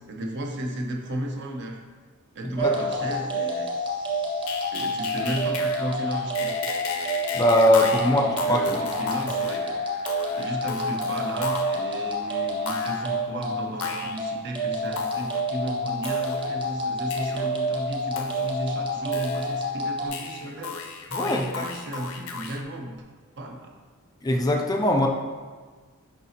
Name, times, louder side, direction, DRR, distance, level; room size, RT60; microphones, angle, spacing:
voice 1, 0.0-1.8 2.3-3.7 4.7-6.5 8.0-9.7 10.4-20.8 21.2-23.0 23.4-23.7, right 1 dB, 55° right, 2 dB, 0.7 m, -34 dB
sound 1, 2.6-20.1, equal, 25° right, 1.0 m, -28 dB
sound 2, 4.5-6.0 6.3-11.9 12.7-13.2 13.8-14.2 15.0-15.4 16.0-16.6 17.1-17.5 18.2-18.7 19.1-19.8 20.1-22.6, left 5 dB, 70° left, 0.6 m, -35 dB
voice 2, 7.3-8.2 8.5-8.8 21.1-21.4 24.2-25.1, left 1 dB, 15° left, 2 dB, 0.4 m, -20 dB
6.7 x 5.0 x 2.8 m, 1.5 s
head